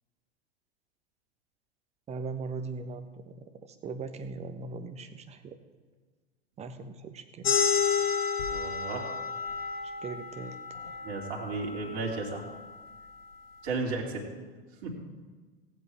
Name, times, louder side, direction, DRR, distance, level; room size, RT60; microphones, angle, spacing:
voice 1, 2.1-3.1 3.8-5.6 6.6-7.6 10.0-10.6, right 4 dB, 20° right, 9 dB, 1.0 m, -39 dB
sound 1, 7.4-12.6, left 6 dB, 65° left, 1.9 m, -31 dB
voice 2, 8.5-9.1 11.0-12.4 13.6-14.2 14.8-14.9, right 3 dB, 50° right, -1 dB, 3.0 m, -34 dB
18.5 x 8.2 x 4.7 m, 1.4 s
figure-of-eight pair, 90°, 31 cm